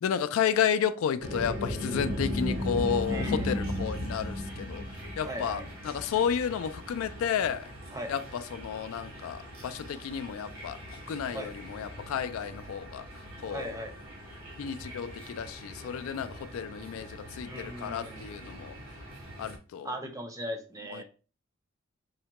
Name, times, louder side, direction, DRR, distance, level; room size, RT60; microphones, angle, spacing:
voice 1, 0.0-4.8 5.2-7.7 8.1-10.8 11.1-13.0 13.4-13.8 14.6-18.7 19.4-19.9 20.9-21.0, left 8 dB, 75° left, 0.3 m, -32 dB
sound 1, 1.2-19.6, left 1 dB, 75° right, 1.2 m, -38 dB
voice 2, 3.1-3.6 5.2-5.7 7.9-8.1 11.3-11.5 13.5-13.9 17.5-18.2 19.8-21.0, equal, 15° right, 0.5 m, -38 dB
4.7 x 2.1 x 2.8 m
head